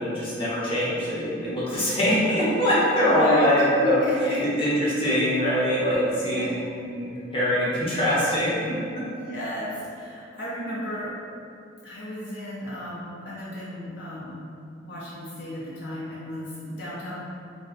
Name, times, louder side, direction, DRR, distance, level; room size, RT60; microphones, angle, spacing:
voice 1, 0.0-4.0 4.6-9.0, equal, 30° left, -8 dB, 0.7 m, -23 dB
voice 2, 3.1-3.5 3.8-4.4 6.2-6.5 7.0-7.1 9.1-11.1 11.8-14.4 14.8-17.2, left 1 dB, 65° left, -7 dB, 0.5 m, -33 dB
2.5 x 2.1 x 3.7 m, 2.4 s
head